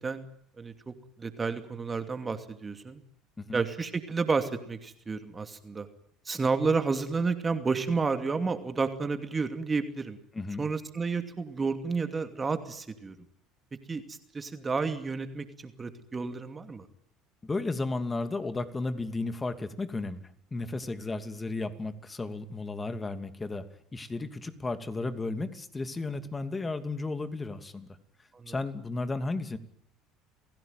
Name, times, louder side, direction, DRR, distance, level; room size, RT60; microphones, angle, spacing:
voice 1, 0.6-0.9 1.2-3.0 3.5-5.9 6.3-10.2 10.6-13.2 13.9-16.9 28.3-28.6, right 4 dB, 25° right, 8 dB, 2.6 m, -31 dB
voice 2, 10.3-10.7 17.4-27.9 28.5-29.6, left 3 dB, 20° left, 10 dB, 2.7 m, -34 dB
29.5 x 17.0 x 9.3 m, 0.71 s
hypercardioid pair, 70°, 0 cm